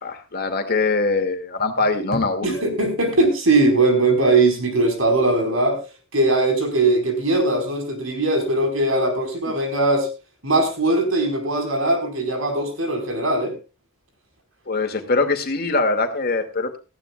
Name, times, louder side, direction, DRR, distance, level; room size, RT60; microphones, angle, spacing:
voice 1, 0.0-2.6 14.7-16.8, left 3 dB, 50° left, 6 dB, 2.3 m, -22 dB
voice 2, 2.4-5.8 6.1-10.1 10.4-13.6, right 2 dB, 80° right, 5 dB, 4.6 m, -20 dB
17.5 x 14.5 x 2.4 m, 0.29 s
head